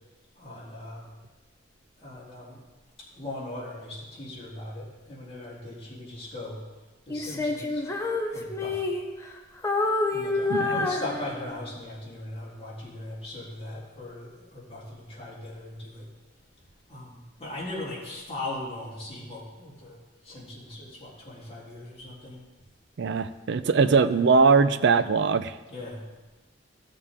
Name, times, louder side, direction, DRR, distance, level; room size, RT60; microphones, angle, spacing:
voice 1, 0.3-1.1 2.0-2.6 3.1-6.6 7.1-7.8 8.3-9.0 10.1-16.1 16.9-22.4 23.7-24.2 25.7-26.0, left 1 dB, 30° left, -7 dB, 3.3 m, -39 dB
Female singing, 7.1-9.3 9.6-11.7, left 3 dB, 15° left, 0.8 m, -28 dB
voice 2, 10.5-10.9 23.0-25.5, right 5 dB, 65° right, 12 dB, 0.5 m, -21 dB
14.5 x 6.6 x 3.6 m, 1.2 s
head